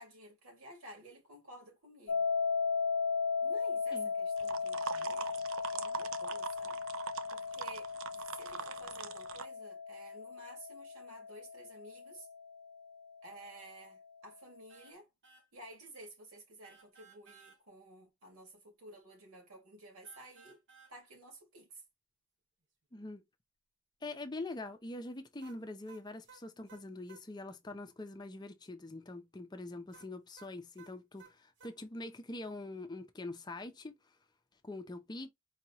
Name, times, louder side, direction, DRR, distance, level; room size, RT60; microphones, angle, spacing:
voice 1, 0.0-2.3 3.4-5.5 5.7-6.8 7.3-7.9 8.3-12.3 13.2-15.1 15.5-20.6 20.9-21.8, right 1 dB, 85° right, 2.3 m, -53 dB
sound 1, 2.1-13.0, left 5 dB, 80° left, 0.4 m, -36 dB
sound 2, 4.4-9.4, right 7 dB, 70° right, 0.5 m, -42 dB
sound 3, 14.7-15.0 15.2-15.5 16.6-17.6 20.0-21.0 25.4-27.3 29.9-31.8, right 5 dB, 55° right, 1.2 m, -59 dB
voice 2, 24.0-33.9 34.6-35.3, left 2 dB, 20° left, 0.5 m, -44 dB
4.7 x 2.9 x 2.8 m
head